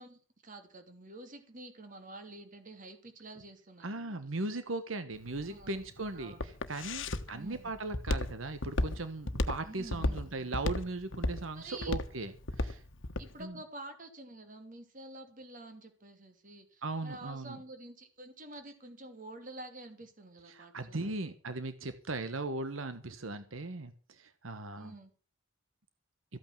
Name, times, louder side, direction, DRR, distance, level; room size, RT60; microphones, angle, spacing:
voice 1, 0.0-4.2 5.3-5.8 6.1-6.5 7.3-7.7 9.6-10.6 11.5-12.0 13.2-21.3 24.7-25.1, right 2 dB, 40° right, 7 dB, 2.9 m, -49 dB
voice 2, 3.8-12.3 12.6-12.8 13.4-13.5 16.8-17.6 20.5-24.9, right 2 dB, 85° right, 10 dB, 1.3 m, -38 dB
Walk footsteps, 5.2-13.3, left 2 dB, 70° left, 1.3 m, -34 dB
14.5 x 9.0 x 7.5 m, 0.39 s
head